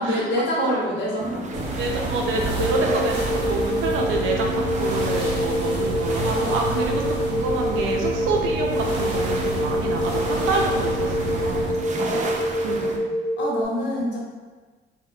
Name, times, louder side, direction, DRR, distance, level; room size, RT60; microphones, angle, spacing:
voice 1, 0.0-1.7 13.4-14.2, left 1 dB, 65° left, -4 dB, 0.9 m, -26 dB
sound 1, 1.2-13.0, right 2 dB, 35° right, 0.4 m, -32 dB
sound 2, 1.5-11.8, equal, 60° right, 0.9 m, -30 dB
voice 2, 1.8-11.7 12.0-13.1, right 3 dB, 90° right, 0 dB, 0.5 m, -28 dB
sound 3, 2.5-13.6, equal, 90° left, 0.6 m, -26 dB
2.1 x 2.1 x 3.6 m, 1.3 s
cardioid pair, 90°, 20 cm